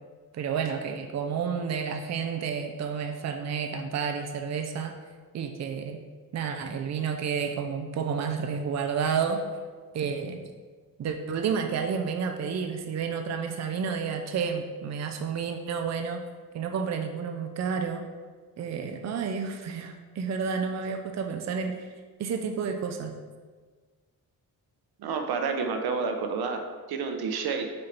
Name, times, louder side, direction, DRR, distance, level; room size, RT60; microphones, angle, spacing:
voice 1, 0.3-4.9 5.3-6.0 6.3-9.4 9.9-10.4 11.0-16.2 16.5-18.1 18.6-21.9 22.2-23.1, right 6 dB, 45° right, 4 dB, 0.6 m, -30 dB
voice 2, 25.0-27.7, right 5 dB, 90° right, 5 dB, 0.8 m, -30 dB
6.6 x 4.3 x 4.0 m, 1.5 s
wide cardioid pair, 145°, 36 cm